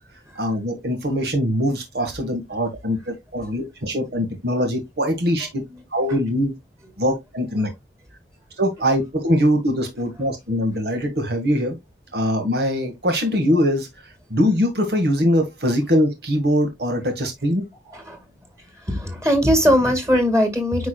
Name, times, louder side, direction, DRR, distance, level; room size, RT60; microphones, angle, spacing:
voice 1, 0.4-5.6 5.9-6.5 7.0-7.7 8.6-11.8 12.1-13.9 14.3-17.6, equal, 70° right, 1.9 m, -22 dB
voice 2, 18.9-20.9, equal, 15° right, 2.0 m, -19 dB
9.5 x 4.8 x 2.3 m
head